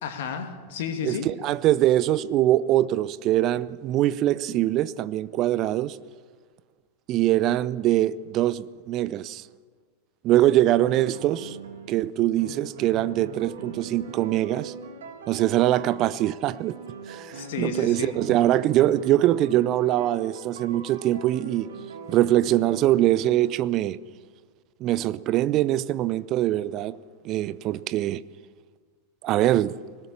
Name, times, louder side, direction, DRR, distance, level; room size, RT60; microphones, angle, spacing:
voice 1, 0.0-1.3 17.3-18.1, left 7 dB, 55° left, 2.5 m, -32 dB
voice 2, 1.0-6.0 7.1-9.4 10.2-11.6 11.9-14.7 15.3-16.8 17.1-21.7 22.1-24.0 24.8-27.0 27.2-28.2 29.2-29.7, right 14 dB, 35° right, 0.6 m, -23 dB
sound 1, 10.7-12.0 12.4-23.6, right 5 dB, 65° right, 2.2 m, -41 dB
20.5 x 18.0 x 7.3 m
figure-of-eight pair, 90°, 0 cm